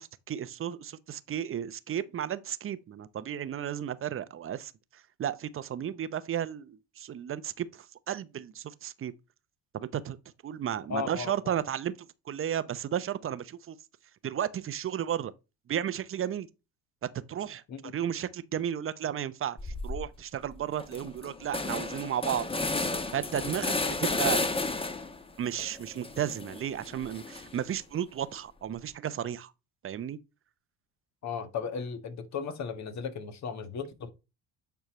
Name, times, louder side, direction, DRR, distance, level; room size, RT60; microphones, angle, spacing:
voice 1, 0.0-9.1 9.7-10.2 10.4-13.8 14.2-15.3 15.7-16.5 17.3-17.6 17.9-22.4 23.1-24.5 25.4-29.5 29.8-30.2, right 10 dB, 35° right, 0.7 m, -34 dB
voice 2, 10.9-11.6 17.7-17.9 31.2-34.1, left 6 dB, 50° left, 1.5 m, -36 dB
sound 1, 19.6-20.1 20.5-20.6 20.8-25.2 25.6-27.7, left 3 dB, 15° left, 1.1 m, -32 dB
9.1 x 4.6 x 3.1 m
hypercardioid pair, 70°, 36 cm